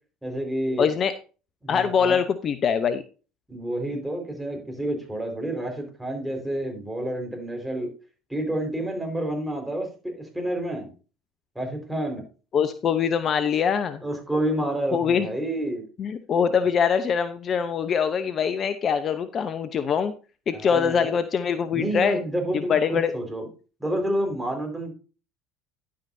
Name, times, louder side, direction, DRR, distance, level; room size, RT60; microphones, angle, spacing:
voice 1, 0.2-0.9 1.6-2.2 3.5-7.9 8.3-10.9 11.5-12.2 14.0-15.8 20.5-21.1 21.7-23.5 23.8-24.9, right 1 dB, 5° right, 1 dB, 4.6 m, -29 dB
voice 2, 0.8-1.1 1.7-3.0 12.5-14.0 14.9-15.3 16.0-20.1 20.5-22.2 22.5-23.1, left 7 dB, 45° left, 11 dB, 0.8 m, -23 dB
11.0 x 8.7 x 2.7 m, 0.35 s
hypercardioid pair, 70°, 0 cm